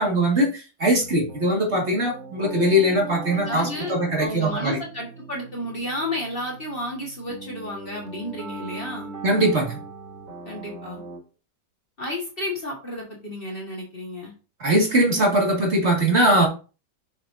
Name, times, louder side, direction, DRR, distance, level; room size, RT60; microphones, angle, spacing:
voice 1, 0.0-4.8 9.2-9.8 14.6-16.5, right 1 dB, 40° right, -1 dB, 2.2 m, -21 dB
sound 1, 1.0-11.2, right 3 dB, 80° right, 3.8 m, -40 dB
voice 2, 3.3-3.9 4.2-9.1 10.5-11.0 12.0-14.3, left 1 dB, 30° left, -1 dB, 1.8 m, -32 dB
7.1 x 6.1 x 2.7 m, 0.33 s
omnidirectional pair, 1.9 m